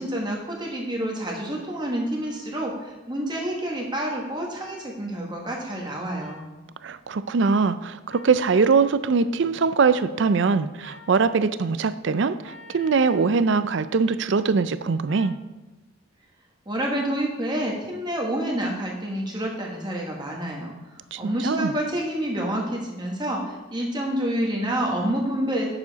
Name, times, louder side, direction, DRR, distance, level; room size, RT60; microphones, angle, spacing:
voice 1, 0.0-6.5 16.7-25.7, right 1 dB, 20° right, -1 dB, 1.3 m, -28 dB
sound 1, 2.2-2.4 3.6-3.8 4.6-4.8 6.2-6.5 8.1-8.7 10.8-11.1 12.4-13.3 15.1-15.4, left 2 dB, 60° left, 1.1 m, -46 dB
voice 2, 6.8-15.3 21.1-21.7, right 4 dB, 60° right, 14 dB, 0.4 m, -22 dB
9.6 x 6.9 x 4.0 m, 1.1 s
head